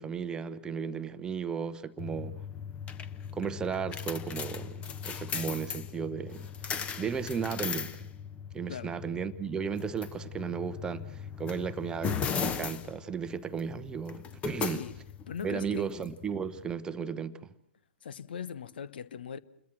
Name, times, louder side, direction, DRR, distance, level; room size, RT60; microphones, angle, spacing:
voice 1, 0.0-2.4 3.3-6.5 7.0-8.1 8.5-14.8 15.4-17.5, right 6 dB, 10° right, 0.9 m, -35 dB
sound 1, 2.0-16.7, left 7 dB, 20° left, 1.1 m, -38 dB
voice 2, 14.6-15.0 15.3-15.9 18.0-19.4, left 7 dB, 55° left, 0.9 m, -40 dB
28.0 x 22.0 x 6.2 m
figure-of-eight pair, 115°, 6 cm